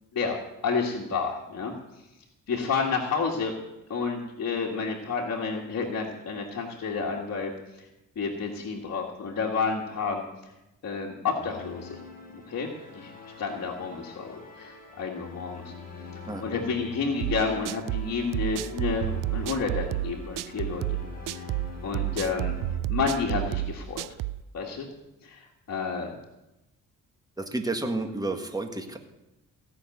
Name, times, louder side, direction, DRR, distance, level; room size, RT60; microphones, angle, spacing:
voice 1, 0.1-1.7 2.5-3.5 3.9-7.5 8.2-10.2 10.8-12.0 12.5-12.7 12.9-13.1 13.4-15.7 16.4-20.8 21.3-21.6 21.8-22.6 22.9-24.1 24.5-24.9 25.2-26.1, left 5 dB, 50° left, -2 dB, 1.9 m, -30 dB
sound 1, 11.4-22.8, left 4 dB, 25° left, 4.5 m, -45 dB
sound 2, 17.2-24.4, right 15 dB, 75° right, 0.5 m, -30 dB
voice 2, 27.4-29.0, right 2 dB, 10° right, 5 dB, 1.7 m, -31 dB
16.0 x 6.2 x 9.2 m, 0.95 s
cardioid pair, 85°, 33 cm